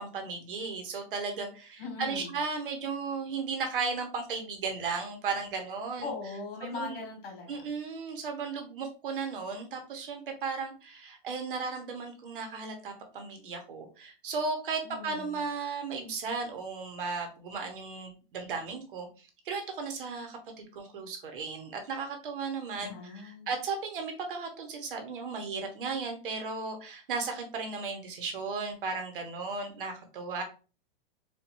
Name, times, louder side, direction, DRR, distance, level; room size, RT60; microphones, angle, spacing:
voice 1, 0.0-6.1 6.6-7.0 7.5-19.1 19.4-30.4, right 4 dB, 60° right, 4 dB, 1.1 m, -35 dB
voice 2, 1.8-2.4 6.0-7.7 14.8-15.4 22.8-23.5, left 4 dB, 70° left, 2 dB, 1.9 m, -40 dB
4.4 x 2.6 x 2.6 m, 0.34 s
supercardioid pair, 170°, 29 cm